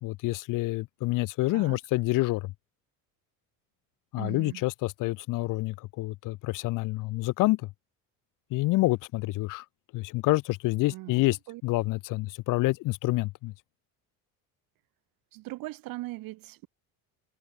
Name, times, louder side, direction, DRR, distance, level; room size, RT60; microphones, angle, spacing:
voice 1, 0.0-2.5 4.1-7.7 8.5-9.6 9.9-11.4 11.6-13.5, left 20 dB, 60° left, 0.7 m, -27 dB
voice 2, 4.2-4.6 10.9-11.6 15.3-16.7, right 19 dB, 65° right, 2.3 m, -40 dB
cardioid pair, 165°, 37 cm